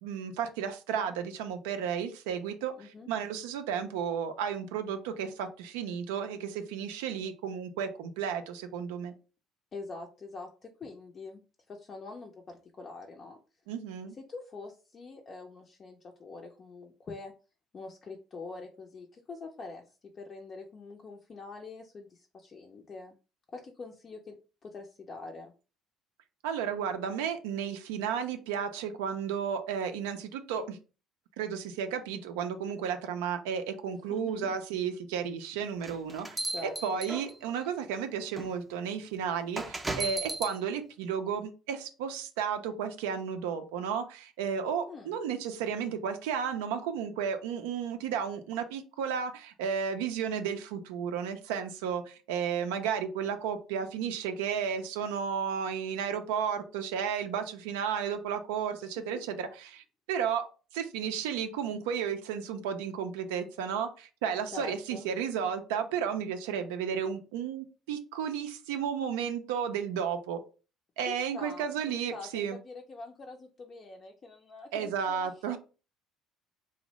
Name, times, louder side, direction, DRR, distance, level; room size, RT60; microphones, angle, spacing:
voice 1, 0.0-9.1 13.7-14.1 26.4-30.8 31.4-60.5 60.7-70.4 71.0-72.6 74.7-75.6, right 7 dB, 75° right, 7 dB, 0.4 m, -33 dB
voice 2, 2.8-3.1 9.7-13.4 14.1-17.3 17.7-19.8 20.2-23.1 23.5-24.4 24.6-25.5 34.1-34.6 36.5-37.1 44.9-45.1 64.5-65.1 71.1-75.6, left 3 dB, 40° left, 2 dB, 0.5 m, -45 dB
sound 1, 35.8-37.6 38.4-38.5 39.6-40.6, right 2 dB, 20° right, 0.5 m, -35 dB
2.5 x 2.0 x 3.0 m, 0.34 s
hypercardioid pair, 60°, 0 cm